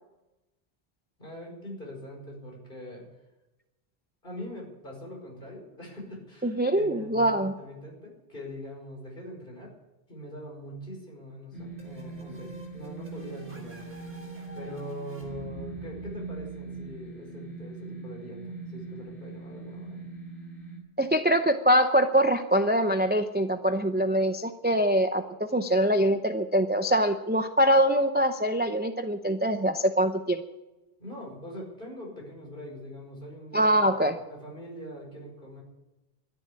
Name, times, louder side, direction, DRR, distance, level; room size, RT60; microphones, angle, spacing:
voice 1, 1.2-3.0 4.2-9.7 10.1-14.1 14.6-20.0 31.0-35.6, equal, 50° left, -1 dB, 5.4 m, -42 dB
voice 2, 6.4-7.5 21.0-30.4 33.5-34.2, equal, 10° right, 8 dB, 0.6 m, -24 dB
sound 1, 11.5-20.8, right 3 dB, 90° left, 4.7 m, -41 dB
sound 2, 11.8-17.4, equal, 50° right, 5.1 m, -50 dB
13.0 x 11.0 x 9.6 m, 1.0 s
omnidirectional pair, 1.1 m